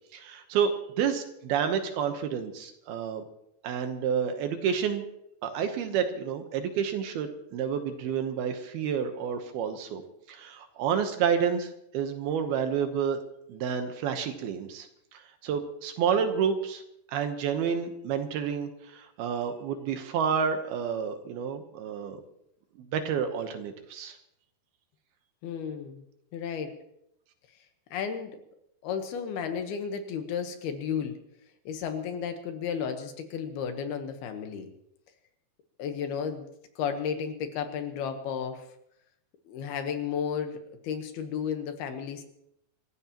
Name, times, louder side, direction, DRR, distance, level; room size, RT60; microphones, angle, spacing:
voice 1, 0.1-3.2 3.6-5.1 5.4-10.0 10.3-13.2 13.5-14.9 15.1-16.8 17.1-22.2 22.8-24.2, right 7 dB, 70° right, 7 dB, 2.7 m, -29 dB
voice 2, 25.4-26.0 26.3-26.7 27.9-28.4 28.8-31.1 31.7-34.7 35.8-36.5 36.8-38.7 39.5-42.2, left 7 dB, 70° left, 6 dB, 2.9 m, -33 dB
27.5 x 14.5 x 3.0 m, 0.79 s
omnidirectional pair, 5.0 m